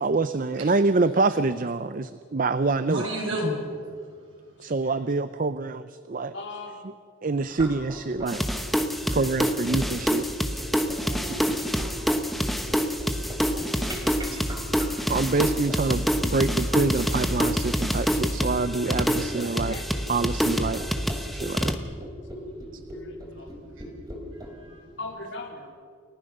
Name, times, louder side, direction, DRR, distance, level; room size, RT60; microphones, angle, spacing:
voice 1, 0.0-3.0 3.3-3.4 4.6-6.3 7.2-8.4 9.1-10.3 11.3-11.4 15.1-19.8 20.1-20.8 21.4-21.7, right 3 dB, 45° right, 13 dB, 0.5 m, -26 dB
voice 2, 2.9-3.5 11.0-11.5 13.5-14.4, equal, 85° right, 0 dB, 6.4 m, -32 dB
voice 3, 6.3-6.7 15.3-15.4 16.2-16.4 18.8-19.8 21.1-21.5 22.9-23.5 25.0-25.7, left 2 dB, 60° left, 1 dB, 3.7 m, -41 dB
sound 1, 7.5-24.5, equal, 20° right, 3.5 m, -39 dB
sound 2, 8.3-21.7, equal, ahead, 1.1 m, -27 dB
29.5 x 14.5 x 6.7 m, 2.1 s
head